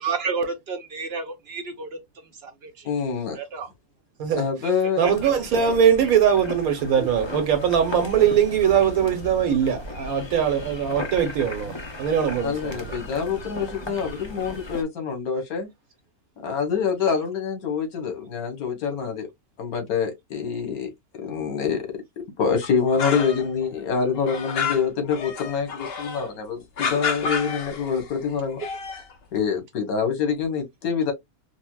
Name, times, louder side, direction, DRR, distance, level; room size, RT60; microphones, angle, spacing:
voice 1, 0.0-1.9 2.4-2.9 3.3-3.7 5.0-5.1 7.0-7.1 24.0-24.1, right 5 dB, 55° right, 0.8 m, -30 dB
voice 2, 2.8-3.4 4.4-5.0 12.4-15.7 16.4-19.3 19.6-28.6 29.3-31.1, left 6 dB, 85° left, 1.6 m, -26 dB
sound 1, 5.0-14.8, left 2 dB, 30° left, 0.5 m, -37 dB
voice 3, 5.0-11.7 12.0-13.0, right 8 dB, 85° right, 1.4 m, -21 dB
sound 2, 22.6-23.7 23.9-26.3 26.8-28.1 28.5-29.1, left 6 dB, 55° left, 0.8 m, -30 dB
4.9 x 2.1 x 2.2 m
omnidirectional pair, 1.5 m